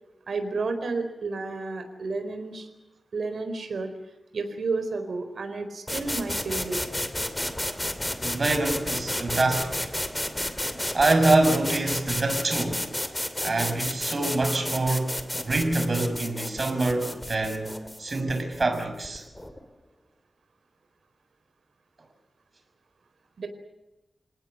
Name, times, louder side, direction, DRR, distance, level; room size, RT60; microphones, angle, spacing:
voice 1, 0.3-2.7 3.1-3.9 4.3-6.8 23.4-23.5, right 3 dB, 80° right, 4.4 m, -31 dB
sound 1, 5.9-19.6, left 1 dB, 10° left, 2.7 m, -32 dB
voice 2, 8.2-9.9 10.9-12.9 13.4-19.3, right 2 dB, 45° right, 6.3 m, -25 dB
29.0 x 19.0 x 7.8 m
wide cardioid pair, 115°, 0 cm